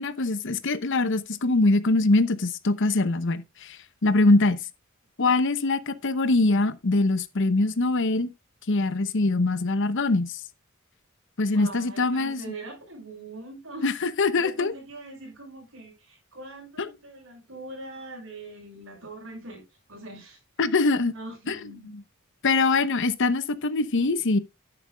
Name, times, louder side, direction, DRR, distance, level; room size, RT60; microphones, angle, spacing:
voice 1, 0.0-4.6 5.2-8.3 8.7-10.4 11.4-12.4 13.8-14.7 16.8-16.9 20.6-21.1 21.5-21.6 22.4-24.4, left 2 dB, 60° left, 0.8 m, -23 dB
voice 2, 11.5-14.0 14.4-19.6 19.9-20.4 21.1-21.9 22.7-23.0, right 2 dB, 65° right, 6.2 m, -42 dB
11.0 x 10.0 x 2.3 m
head